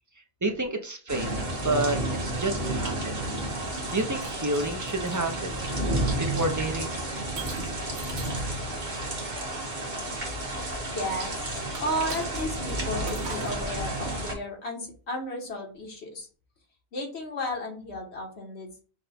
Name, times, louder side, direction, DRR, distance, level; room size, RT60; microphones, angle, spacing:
voice 1, 0.4-1.3 1.6-3.1 3.9-5.7 6.2-6.9, right 2 dB, 30° right, 4 dB, 0.3 m, -29 dB
sound 1, 1.1-14.3, right 1 dB, 45° right, 1.2 m, -31 dB
Shatter, 3.8-5.2 5.8-6.2 7.4-8.5 11.7-12.7 13.1-13.7, right 5 dB, 80° right, 1.1 m, -41 dB
voice 2, 10.2-16.3 16.9-18.8, left 1 dB, 80° left, 1 dB, 1.5 m, -34 dB
5.8 x 2.2 x 4.1 m, 0.39 s
omnidirectional pair, 1.1 m